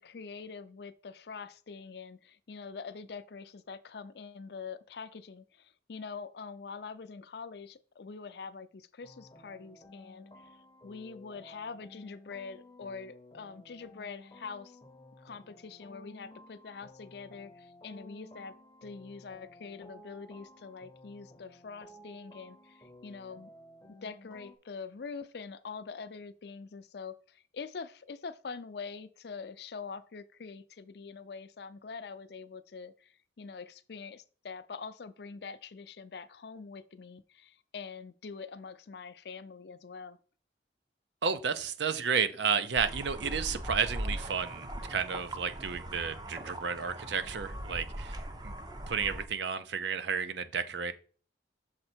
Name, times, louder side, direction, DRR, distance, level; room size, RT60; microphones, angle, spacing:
voice 1, 0.0-14.8 15.2-18.5 18.8-23.5 24.0-40.2, left 5 dB, 60° left, 0.5 m, -44 dB
sound 1, 9.0-24.6, left 1 dB, 20° left, 0.6 m, -54 dB
voice 2, 41.2-48.2 48.4-48.5 48.9-50.9, right 6 dB, 70° right, 0.6 m, -32 dB
sound 2, 42.8-49.3, right 1 dB, 20° right, 0.6 m, -40 dB
6.5 x 4.2 x 4.4 m
head